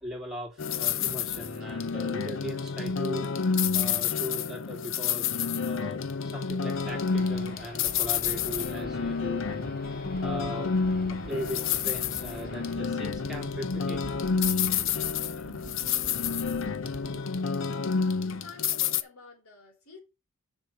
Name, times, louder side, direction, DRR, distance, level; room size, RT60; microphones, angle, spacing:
voice 1, 0.0-3.3 3.7-10.8 11.3-14.2 14.4-15.1, equal, ahead, 2.8 m, -39 dB
sound 1, 0.6-19.0, left 6 dB, 60° left, 0.6 m, -29 dB
sound 2, 6.7-12.8, left 1 dB, 45° left, 4.7 m, -47 dB
sound 3, 7.9-17.2, right 2 dB, 40° right, 0.6 m, -47 dB
voice 2, 18.2-20.0, left 4 dB, 80° left, 4.0 m, -50 dB
6.0 x 5.8 x 6.4 m
head